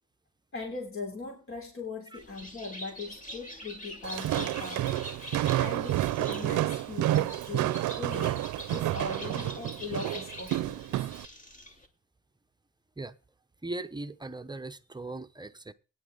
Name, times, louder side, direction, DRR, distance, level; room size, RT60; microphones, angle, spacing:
voice 1, 0.5-11.0, left 3 dB, 45° left, 3.4 m, -40 dB
Bird, 2.2-11.9, equal, 25° left, 2.5 m, -45 dB
Walk footsteps, 4.0-11.3, right 14 dB, 80° right, 0.7 m, -30 dB
voice 2, 13.6-15.7, right 2 dB, 15° right, 0.9 m, -39 dB
15.5 x 10.0 x 4.0 m
cardioid pair, 90°, 30 cm